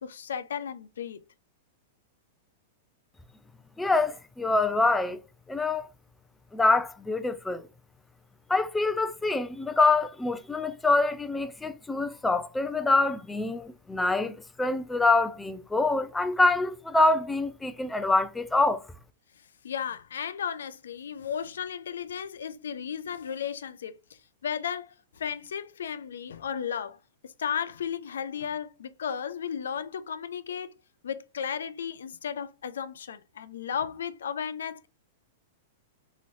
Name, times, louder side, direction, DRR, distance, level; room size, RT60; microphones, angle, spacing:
voice 1, 0.0-1.3 19.6-30.7 31.0-34.9, left 8 dB, 90° left, 0.3 m, -34 dB
voice 2, 3.8-5.2 5.5-5.9 6.5-7.6 8.5-18.8, left 2 dB, 5° left, 0.3 m, -25 dB
3.0 x 2.7 x 2.5 m
hypercardioid pair, 135°, 0 cm